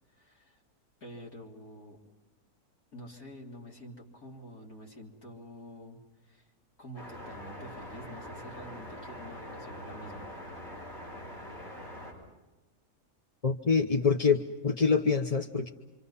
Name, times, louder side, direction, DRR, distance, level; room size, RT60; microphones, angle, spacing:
voice 1, 0.1-0.6 1.0-2.0 2.9-6.5 6.8-10.3, equal, 80° left, -1 dB, 4.0 m, -47 dB
sound 1, 6.9-12.1, left 1 dB, 50° left, 8.1 m, -44 dB
voice 2, 13.4-15.7, left 5 dB, 30° left, 5 dB, 0.8 m, -26 dB
27.0 x 26.5 x 5.7 m, 1.1 s
omnidirectional pair, 1.5 m